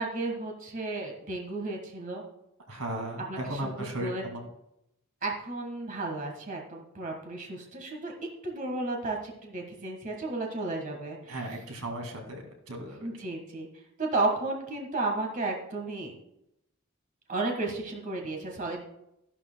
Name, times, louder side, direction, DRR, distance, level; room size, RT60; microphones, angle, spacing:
voice 1, 0.0-2.2 3.2-4.2 5.2-8.1 8.4-11.5 13.0-13.7 14.0-16.1 17.3-18.8, right 2 dB, 40° right, 1 dB, 1.6 m, -33 dB
voice 2, 2.7-4.4 11.3-13.1, right 1 dB, 85° right, 2 dB, 2.2 m, -36 dB
14.0 x 11.5 x 2.3 m, 0.82 s
head